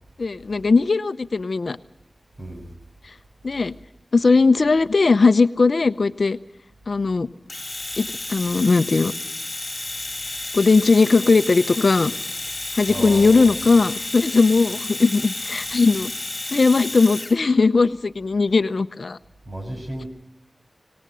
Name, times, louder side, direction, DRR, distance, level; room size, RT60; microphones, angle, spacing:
voice 1, 0.2-1.8 3.4-3.7 4.1-6.4 6.9-7.3 8.0-9.1 10.5-12.1 12.8-16.1 16.5-19.2, left 4 dB, 70° left, 0.7 m, -18 dB
voice 2, 2.4-2.7 12.9-13.6 19.5-20.1, right 1 dB, 50° right, 6.6 m, -33 dB
Domestic sounds home sounds, 7.5-17.4, left 2 dB, 30° left, 3.1 m, -31 dB
25.0 x 19.0 x 6.3 m
wide cardioid pair, 55°, 0 cm